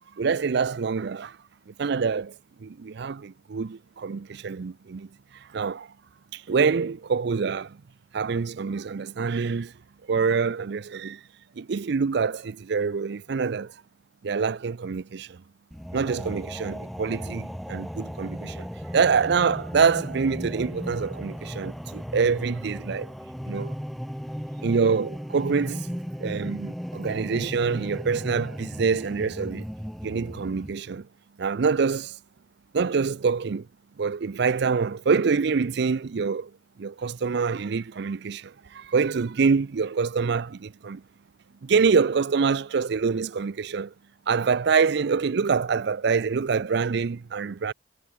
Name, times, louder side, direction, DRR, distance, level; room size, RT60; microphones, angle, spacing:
voice 1, 0.2-1.4 1.7-2.3 2.6-5.1 5.4-5.9 6.3-7.8 8.1-9.7 10.1-11.2 11.6-13.7 14.2-15.4 15.9-18.7 18.9-23.1 23.5-23.7 24.6-25.9 26.2-29.7 30.0-31.1 31.4-32.2 32.7-33.7 34.0-36.5 36.8-41.0 41.6-43.9 44.3-47.7, right 5 dB, 65° right, 0.5 m, -25 dB
sound 1, 15.7-30.7, equal, ahead, 1.8 m, -36 dB
head